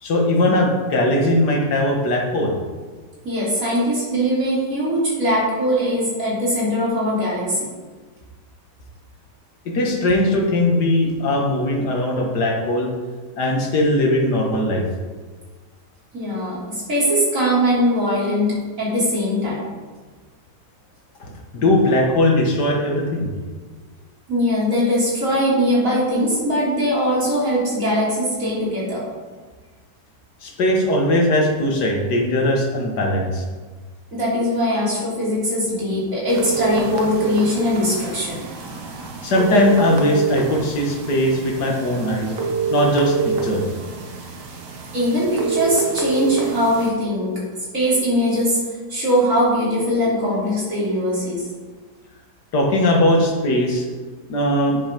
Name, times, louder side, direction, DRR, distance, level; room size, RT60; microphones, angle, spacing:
voice 1, 0.0-2.6 9.7-12.9 13.4-14.8 21.2-21.3 21.5-23.3 30.4-33.4 39.2-42.3 42.7-43.6 52.5-53.8 54.3-54.8, left 1 dB, 70° left, 0 dB, 2.2 m, -19 dB
voice 2, 3.2-7.7 16.1-19.6 24.3-29.1 34.1-38.4 44.9-47.4 47.7-48.6 48.9-51.5, equal, 45° right, -7 dB, 3.9 m, -21 dB
sound 1, 36.3-46.9, right 4 dB, 75° right, 1.9 m, -26 dB
9.4 x 7.0 x 5.2 m, 1.4 s
omnidirectional pair, 1.9 m